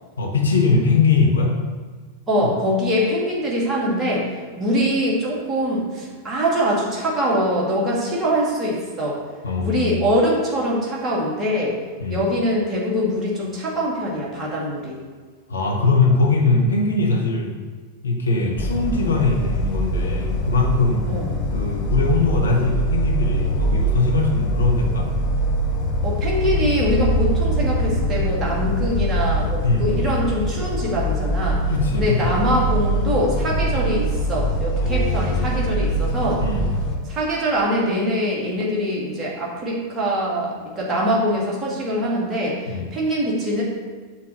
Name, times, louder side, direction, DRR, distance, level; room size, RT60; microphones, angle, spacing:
voice 1, 0.2-1.5 9.4-10.0 12.0-12.2 15.5-17.6 18.0-21.0 21.5-25.1 29.6-29.9 31.7-32.4 33.5-33.6 34.8-35.5 36.4-36.8 42.7-42.9, left 3 dB, 70° left, 0 dB, 1.1 m, -21 dB
voice 2, 2.3-9.2 9.6-11.8 12.1-15.0 21.1-21.3 26.0-31.6 31.9-36.4 37.1-43.6, equal, 20° right, -4 dB, 1.9 m, -23 dB
sound 1, 18.6-37.0, equal, 35° left, 1.1 m, -23 dB
5.9 x 4.1 x 6.3 m, 1.5 s
figure-of-eight pair, 90°, 0 cm